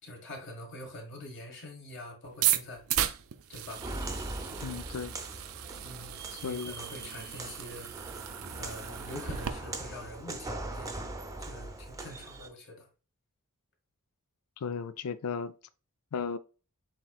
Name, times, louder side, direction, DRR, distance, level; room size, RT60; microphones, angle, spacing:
voice 1, 0.0-2.8 3.5-3.8 5.8-7.9 8.5-11.1 11.4-12.9, left 1 dB, 55° left, 1.7 m, -45 dB
sound 1, 2.3-9.5, right 11 dB, 65° right, 0.5 m, -35 dB
Walk footsteps, 3.7-12.5, right 2 dB, 15° right, 0.6 m, -41 dB
voice 2, 4.6-5.1 6.4-6.8 14.6-15.5 16.1-16.4, left 5 dB, 75° left, 0.4 m, -35 dB
7.4 x 2.9 x 2.3 m
head